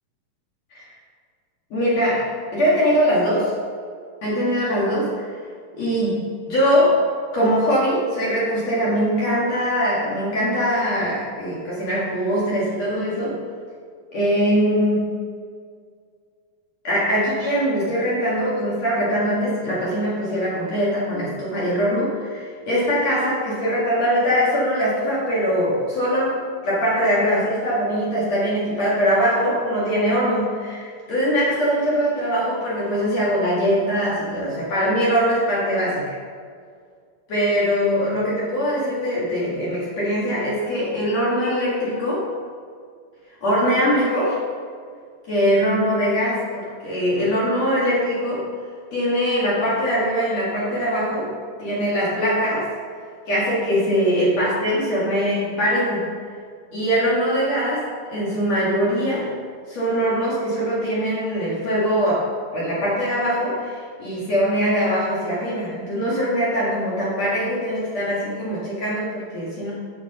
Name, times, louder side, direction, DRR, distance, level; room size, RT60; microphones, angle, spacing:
voice 1, 1.7-3.5 4.2-5.3 5.7-7.0 7.3-13.4 14.1-15.1 16.8-36.2 37.3-42.3 43.4-44.4 45.3-48.4 48.9-51.3 51.6-52.7 53.3-56.1 56.7-59.3 59.7-69.7, equal, 50° left, -7 dB, 2.4 m, -22 dB
9.8 x 6.7 x 5.5 m, 2.1 s
omnidirectional pair, 5.4 m